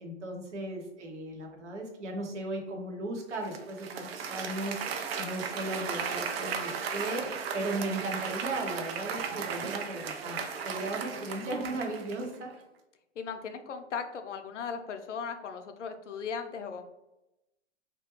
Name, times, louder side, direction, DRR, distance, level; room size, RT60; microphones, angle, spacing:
voice 1, 0.0-12.5, right 2 dB, 75° right, 1 dB, 0.8 m, -36 dB
Applause, 3.4-12.4, right 6 dB, 60° right, 0.5 m, -36 dB
voice 2, 13.2-16.8, left 6 dB, 80° left, 7 dB, 0.5 m, -37 dB
2.3 x 2.2 x 2.8 m, 0.94 s
figure-of-eight pair, 115°, 35 cm